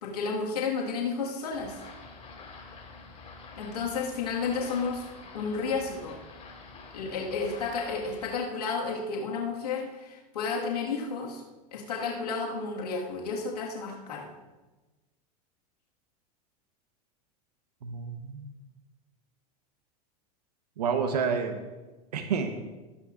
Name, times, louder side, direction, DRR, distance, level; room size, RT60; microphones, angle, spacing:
voice 1, 0.0-1.8 3.6-5.1 5.3-6.2 6.9-11.4 11.7-14.3, left 4 dB, 90° left, -1 dB, 1.8 m, -32 dB
sound 1, 1.5-8.4, left 4 dB, 35° left, 3.9 m, -47 dB
voice 2, 17.8-18.5 20.8-21.6 22.1-22.6, right 6 dB, 85° right, 6 dB, 1.1 m, -29 dB
18.0 x 9.9 x 2.5 m, 1.2 s
hypercardioid pair, 95°, 20 cm